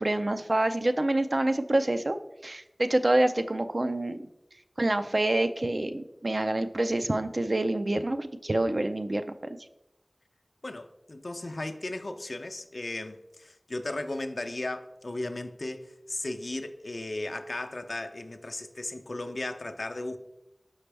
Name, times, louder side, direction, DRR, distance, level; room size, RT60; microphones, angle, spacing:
voice 1, 0.0-2.2 2.4-4.2 4.8-9.3, right 1 dB, 65° right, 0.4 m, -27 dB
voice 2, 10.6-20.2, left 2 dB, 85° left, 0.5 m, -36 dB
6.0 x 5.5 x 3.3 m
wide cardioid pair, 40°, 0 cm